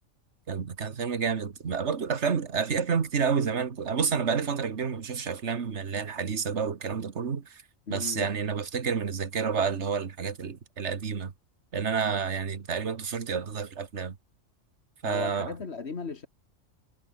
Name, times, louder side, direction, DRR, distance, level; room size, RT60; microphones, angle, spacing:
voice 1, 0.5-7.6 7.9-11.3 11.7-14.2 15.0-15.5, right 6 dB, 65° right, 1.8 m, -29 dB
voice 2, 7.9-8.3 15.0-16.3, left 4 dB, 60° left, 2.0 m, -36 dB
omnidirectional pair, 1.3 m